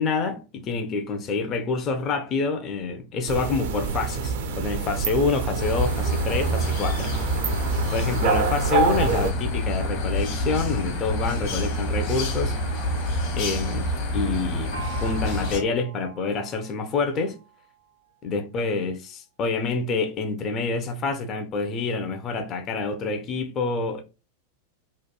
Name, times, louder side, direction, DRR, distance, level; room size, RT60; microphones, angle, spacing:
voice 1, 0.0-7.1 7.9-12.6 13.4-13.9 14.1-17.4 18.2-24.0, left 4 dB, 30° left, 0.4 m, -27 dB
sound 1, 3.3-9.3, right 5 dB, 50° right, 0.4 m, -27 dB
sound 2, 5.6-15.6, left 1 dB, 45° left, 0.9 m, -27 dB
Gong, 14.7-18.2, right 6 dB, 75° left, 0.9 m, -43 dB
2.8 x 2.1 x 2.2 m
figure-of-eight pair, 90°, 0 cm